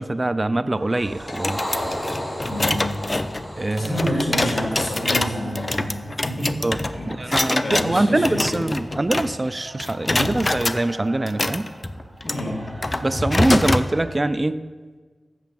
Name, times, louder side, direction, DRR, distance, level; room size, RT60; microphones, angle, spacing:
voice 1, 0.0-1.6 3.6-4.0 6.6-6.8 7.1-11.7 13.0-14.6, right 2 dB, 30° right, 13 dB, 0.4 m, -23 dB
sound 1, 0.7-14.3, right 2 dB, 60° right, 2.2 m, -43 dB
sound 2, 0.9-5.5, equal, 15° left, 2.0 m, -33 dB
sound 3, 1.3-9.5 9.8-10.8 11.3-13.9, left 2 dB, 30° left, 0.5 m, -25 dB
voice 2, 2.5-3.0 3.7-6.6 6.9-8.6 10.1-10.4 12.2-12.7, equal, 50° left, -2 dB, 3.4 m, -28 dB
7.6 x 6.8 x 7.3 m, 1.4 s
wide cardioid pair, 65°, 0 cm